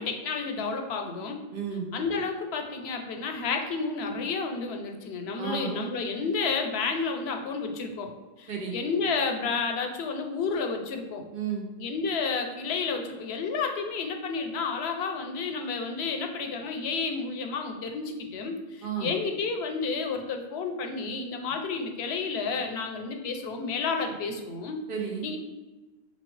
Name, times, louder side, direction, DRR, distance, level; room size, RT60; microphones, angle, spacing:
voice 1, 0.0-1.4 1.9-8.1 8.4-11.2 11.8-24.8 25.2-25.4, left 4 dB, 85° left, 5 dB, 0.8 m, -31 dB
voice 2, 1.5-1.9 5.4-5.7 8.5-8.8 11.3-11.7 18.8-19.1 24.9-25.3, right 7 dB, 65° right, 1 dB, 0.8 m, -32 dB
4.1 x 2.9 x 3.1 m, 1.2 s
omnidirectional pair, 1.0 m